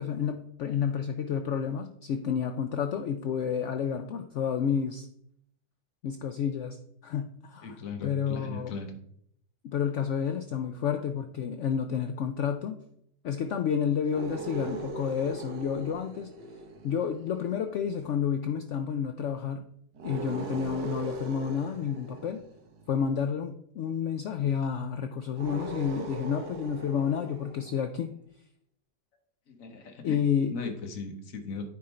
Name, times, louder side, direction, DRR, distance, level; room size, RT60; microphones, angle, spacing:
voice 1, 0.0-5.1 6.0-6.8 7.0-8.7 9.6-12.8 13.2-16.3 16.8-19.6 20.0-22.4 22.9-28.1 30.0-30.7, left 7 dB, 85° left, 7 dB, 0.6 m, -30 dB
voice 2, 7.6-8.9 29.5-30.2 30.5-31.7, left 4 dB, 55° left, 6 dB, 1.3 m, -38 dB
sound 1, 14.0-17.6 19.9-23.1 25.3-28.0, right 3 dB, 85° right, 1.6 m, -40 dB
9.6 x 3.8 x 4.3 m, 0.70 s
omnidirectional pair, 1.8 m